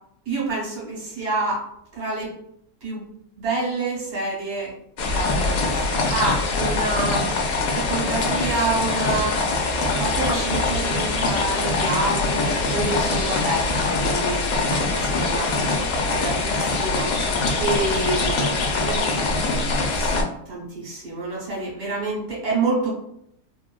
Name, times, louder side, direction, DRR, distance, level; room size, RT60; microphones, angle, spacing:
voice 1, 0.2-1.7 1.9-2.3 2.8-3.1 3.4-4.7 5.1-7.4 7.7-22.9, right 2 dB, 85° right, -4 dB, 1.7 m, -28 dB
sound 1, 5.0-20.2, left 3 dB, 70° left, 0.8 m, -23 dB
3.3 x 2.1 x 2.3 m, 0.73 s
omnidirectional pair, 1.5 m